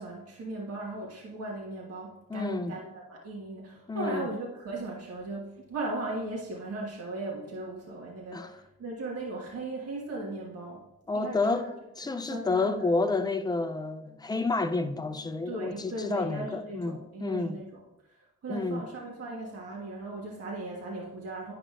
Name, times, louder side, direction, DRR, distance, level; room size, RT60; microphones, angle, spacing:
voice 1, 0.0-10.8 11.1-11.7 12.3-12.9 15.4-17.8 18.1-21.5, right 2 dB, 55° right, 1.5 m, -37 dB
voice 2, 2.3-2.7 3.9-4.3 8.3-8.5 11.1-17.6 18.5-18.8, left 3 dB, 15° left, 0.5 m, -30 dB
11.0 x 4.9 x 2.5 m
cardioid pair, 90°, 30 cm